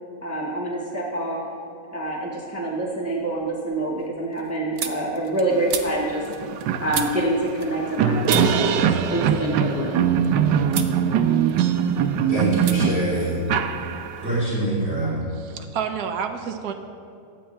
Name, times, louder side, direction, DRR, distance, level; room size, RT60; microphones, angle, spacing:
voice 1, 0.2-1.4 1.9-6.2 6.8-10.1, right 1 dB, 10° right, -3 dB, 1.3 m, -26 dB
sound 1, 2.0-2.6 2.9-8.0 8.2-10.3 10.7-11.0 11.3-12.1 12.6-12.8 13.0-14.1, right 7 dB, 55° right, 0.9 m, -35 dB
sound 2, 5.9-6.0 6.3-14.3, right 8 dB, 90° right, 1.3 m, -22 dB
voice 2, 12.3-13.4 14.2-15.1, right 1 dB, 35° right, -8 dB, 3.6 m, -24 dB
voice 3, 15.3-16.7, right 7 dB, 70° right, 5 dB, 1.3 m, -29 dB
24.5 x 8.9 x 3.3 m, 2.7 s
omnidirectional pair, 1.8 m